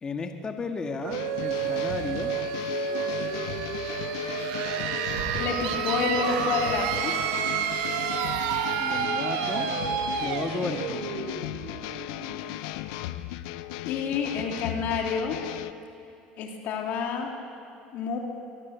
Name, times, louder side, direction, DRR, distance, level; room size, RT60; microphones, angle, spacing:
voice 1, 0.0-2.3 8.8-9.7 10.2-11.0, left 4 dB, 25° left, 5 dB, 1.8 m, -34 dB
sound 1, 1.0-12.6, right 9 dB, 90° right, 1.6 m, -30 dB
sound 2, 1.1-15.7, left 14 dB, 90° left, 0.8 m, -36 dB
Boom, 5.1-6.9 7.8-8.0, right 6 dB, 60° right, 2.8 m, -41 dB
voice 2, 5.3-7.1 12.4-12.8 13.8-15.4 16.4-17.3 17.9-18.2, left 5 dB, 65° left, 2 dB, 3.2 m, -29 dB
23.0 x 22.0 x 8.2 m, 2.6 s
cardioid pair, 125°, 3 cm